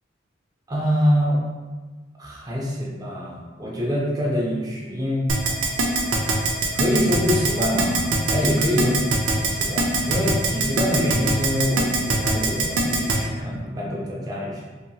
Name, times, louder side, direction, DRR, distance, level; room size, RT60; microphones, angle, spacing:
voice 1, 0.7-1.4 2.2-5.3 6.7-9.0 9.3-14.8, equal, 20° right, -4 dB, 0.5 m, -25 dB
Keyboard (musical), 5.3-13.2, right 3 dB, 85° right, 0.4 m, -21 dB
2.8 x 2.7 x 2.2 m, 1.3 s
head